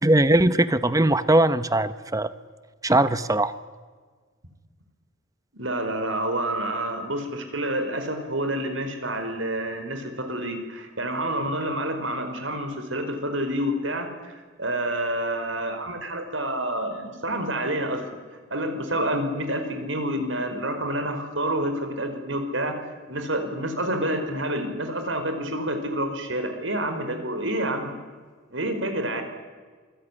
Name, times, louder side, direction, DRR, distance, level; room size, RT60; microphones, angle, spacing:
voice 1, 0.0-2.3 2.8-3.5, right 1 dB, 15° right, 13 dB, 0.9 m, -20 dB
voice 2, 5.5-18.0 18.5-22.8 23.1-28.0 28.5-29.2, right 1 dB, 70° right, 7 dB, 4.8 m, -28 dB
27.5 x 21.5 x 10.0 m, 1.5 s
head